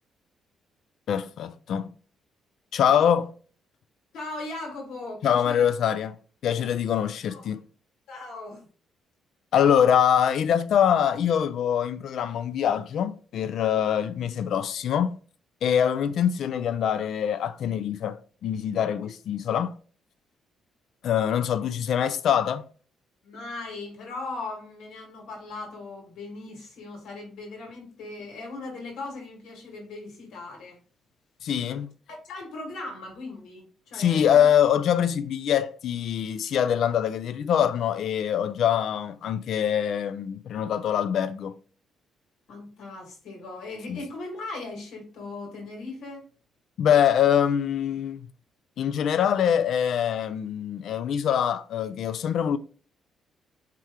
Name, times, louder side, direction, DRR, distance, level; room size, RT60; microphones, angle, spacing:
voice 1, 1.1-1.9 2.7-3.3 5.2-6.2 6.4-7.6 9.5-15.2 15.6-19.8 21.0-22.6 31.4-31.9 33.9-41.5 43.9-44.0 46.8-48.3 48.8-52.6, left 9 dB, 60° left, 0.3 m, -24 dB
voice 2, 4.1-5.7 7.3-7.4 8.1-8.7 19.0-19.1 23.2-30.8 32.2-34.5 42.5-46.2, left 2 dB, 75° left, 1.7 m, -38 dB
4.6 x 2.9 x 3.6 m
cardioid pair, 165°, 0 cm